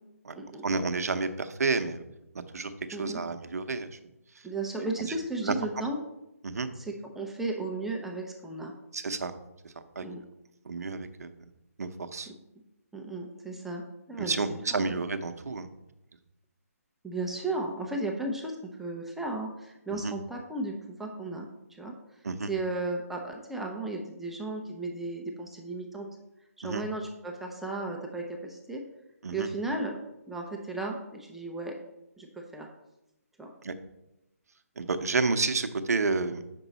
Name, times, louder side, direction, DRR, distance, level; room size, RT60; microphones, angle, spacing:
voice 1, 0.6-2.0 2.5-2.7 3.0-4.0 5.0-5.1 5.4-5.5 6.4-6.7 8.9-9.3 9.6-10.0 10.6-11.3 11.8-12.3 14.2-15.7 19.9-20.1 22.2-22.5 26.6-26.8 29.2-29.5 33.6-33.7 34.8-36.4, right 4 dB, 75° right, 9 dB, 0.8 m, -30 dB
voice 2, 4.4-6.0 6.8-8.7 10.0-10.2 12.3-12.4 12.9-13.8 14.1-14.9 17.0-21.9 22.5-26.1 26.6-28.8 29.3-30.0 30.3-31.7 32.2-32.7 33.4-33.5, right 2 dB, 5° right, 0 dB, 0.5 m, -35 dB
6.9 x 5.3 x 4.1 m, 0.90 s
hypercardioid pair, 155°, 9 cm